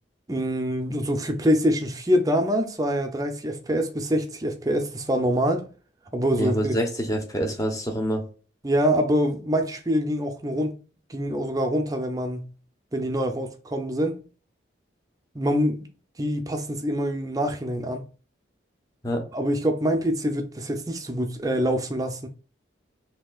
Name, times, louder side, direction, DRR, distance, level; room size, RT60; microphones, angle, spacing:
voice 1, 0.3-5.7 6.1-6.8 8.6-10.7 11.1-12.5 12.9-14.2 15.3-15.9 16.2-18.0 19.3-22.3, equal, 20° right, 0.6 m, -25 dB
voice 2, 6.4-8.2 19.0-19.2, equal, 20° left, 1.0 m, -26 dB
6.1 x 2.9 x 2.4 m
head